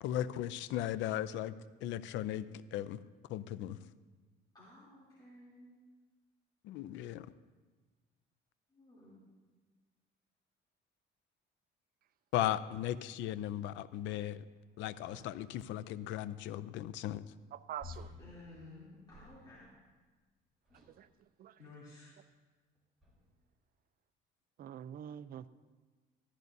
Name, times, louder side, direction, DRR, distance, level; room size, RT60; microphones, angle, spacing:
voice 1, 0.0-1.5 1.8-3.0 3.3-3.8 6.6-7.3 12.3-14.4 14.8-17.2, left 12 dB, 80° left, 16 dB, 0.5 m, -37 dB
voice 2, 4.5-5.8 8.7-9.2 18.2-19.7 21.6-22.2, left 2 dB, 20° left, -8 dB, 3.1 m, -55 dB
sound 1, 15.0-15.6 17.8-19.8 20.6-21.1 22.0-22.1 23.0-23.4, left 3 dB, ahead, 3.7 m, -53 dB
voice 3, 17.5-18.1 21.0-21.1 21.4-21.5 24.6-25.5, right 10 dB, 50° right, 14 dB, 0.5 m, -44 dB
14.5 x 13.0 x 2.7 m, 1.4 s
cardioid pair, 110°, 19 cm